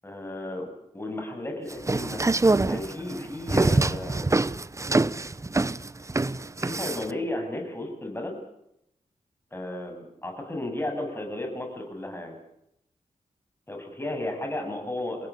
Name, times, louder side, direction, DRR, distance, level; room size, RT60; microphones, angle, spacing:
voice 1, 0.0-0.7 0.9-2.2 2.7-4.3 6.6-8.4 9.5-12.4 13.7-15.3, left 1 dB, 15° left, 3 dB, 7.7 m, -33 dB
sound 1, 1.7-7.1, right 2 dB, 20° right, 0.8 m, -24 dB
30.0 x 16.0 x 8.6 m, 0.79 s
wide cardioid pair, 100°, 14 cm